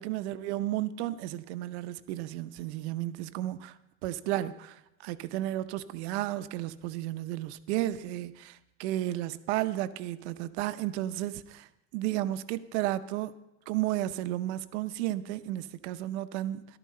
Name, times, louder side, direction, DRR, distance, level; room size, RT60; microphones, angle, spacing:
voice 1, 0.0-3.8 4.0-13.3 13.7-16.8, right 14 dB, 80° right, 0.7 m, -33 dB
14.0 x 12.0 x 4.3 m
supercardioid pair, 140°, 33 cm